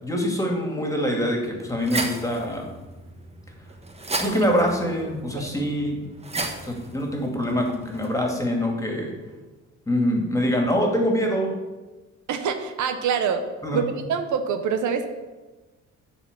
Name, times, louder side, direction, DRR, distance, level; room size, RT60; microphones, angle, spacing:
voice 1, 0.0-2.7 4.2-6.1 6.6-9.1 9.9-11.5 13.6-13.8, equal, 10° left, 1 dB, 2.3 m, -24 dB
sound 1, 1.5-8.3, right 2 dB, 20° right, 1.1 m, -35 dB
voice 2, 12.3-13.4 13.7-13.8 14.1-15.1, right 7 dB, 75° right, 7 dB, 0.9 m, -25 dB
9.9 x 4.4 x 7.3 m, 1.2 s
cardioid pair, 90°, 30 cm